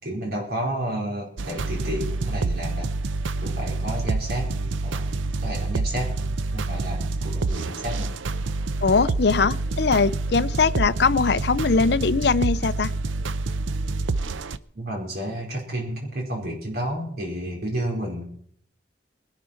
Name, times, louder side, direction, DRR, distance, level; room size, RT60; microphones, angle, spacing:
voice 1, 0.0-3.0 3.4-4.5 4.8-6.2 6.5-8.2 14.7-18.2, right 1 dB, 55° right, -1 dB, 4.7 m, -31 dB
sound 1, 1.4-14.6, right 3 dB, 85° right, 0.6 m, -27 dB
voice 2, 8.8-12.9, left 4 dB, 60° left, 14 dB, 0.5 m, -21 dB
19.5 x 12.0 x 4.5 m, 0.65 s
head